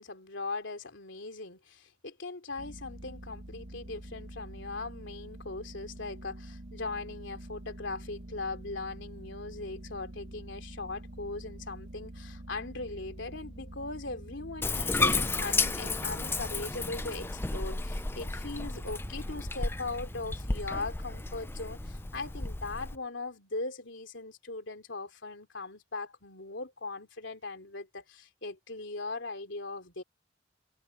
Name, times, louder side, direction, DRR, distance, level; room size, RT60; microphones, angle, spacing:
voice 1, 0.0-30.0, left 3 dB, 85° left, 3.1 m, -39 dB
sound 1, 2.6-22.2, right 1 dB, 60° right, 1.5 m, -47 dB
Bathtub (filling or washing), 14.6-23.0, left 3 dB, 10° left, 0.4 m, -33 dB
head